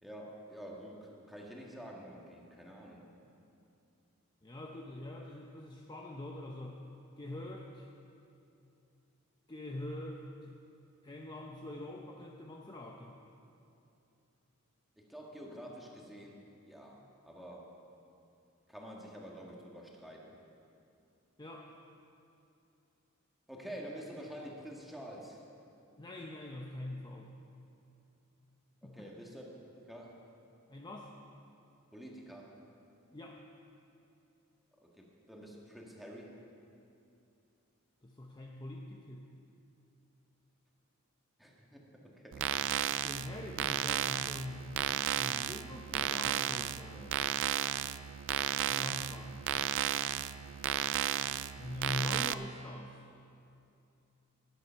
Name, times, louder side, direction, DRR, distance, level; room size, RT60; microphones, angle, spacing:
voice 1, 0.0-3.0 15.0-16.4 16.7-17.0 17.2-17.7 18.7-20.2 23.5-25.4 28.8-30.2 31.9-32.6 34.8-36.3 41.4-42.5, equal, ahead, -2 dB, 1.6 m, -48 dB
voice 2, 4.4-6.8 7.2-7.9 9.5-10.5 11.0-13.2 21.4-21.8 26.0-27.3 28.8-29.1 30.7-31.1 33.1-33.4 38.0-39.3 42.8-44.7 45.2-47.2 48.7-49.4 51.6-53.0, left 1 dB, 20° left, 0 dB, 0.7 m, -43 dB
sound 1, 42.3-52.3, right 11 dB, 60° right, 0.3 m, -34 dB
13.5 x 9.8 x 5.7 m, 2.7 s
head